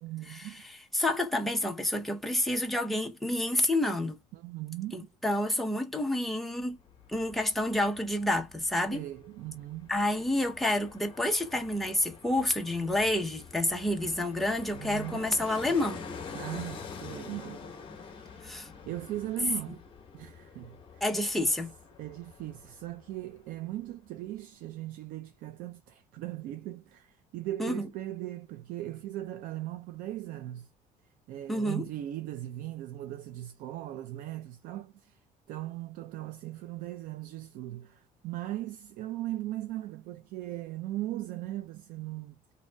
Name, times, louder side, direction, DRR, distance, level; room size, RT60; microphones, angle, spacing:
voice 1, 0.0-0.6 4.3-5.1 8.9-9.9 14.7-15.2 16.3-18.5 18.8-19.8 20.1-21.0 22.0-30.7 31.3-35.2 35.5-42.5, right 15 dB, 70° right, 0.4 m, -39 dB
voice 2, 0.9-4.2 4.9-6.8 7.1-9.1 9.9-16.1 18.4-18.7 21.0-21.7 27.6-27.8 31.5-31.9, left 1 dB, ahead, 0.7 m, -29 dB
Fixed-wing aircraft airplane, 6.6-23.6 23.9-24.0, left 5 dB, 35° left, 1.0 m, -47 dB
3.8 x 2.6 x 2.2 m
cardioid pair, 145°, 15 cm